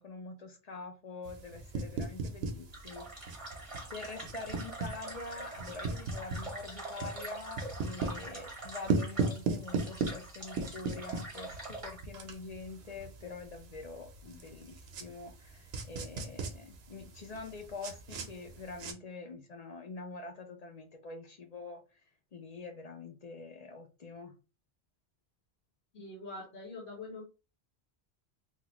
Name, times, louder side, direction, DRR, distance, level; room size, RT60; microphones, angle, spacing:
voice 1, 0.0-3.4 3.9-22.0 22.3-24.3, left 3 dB, 50° left, 0.5 m, -45 dB
sound 1, 1.2-18.9, right 3 dB, 80° right, 1.0 m, -39 dB
sound 2, 2.7-12.0, right 2 dB, 30° right, 1.1 m, -44 dB
voice 2, 25.9-27.3, left 2 dB, 75° left, 1.3 m, -44 dB
3.4 x 2.3 x 3.0 m
omnidirectional pair, 1.1 m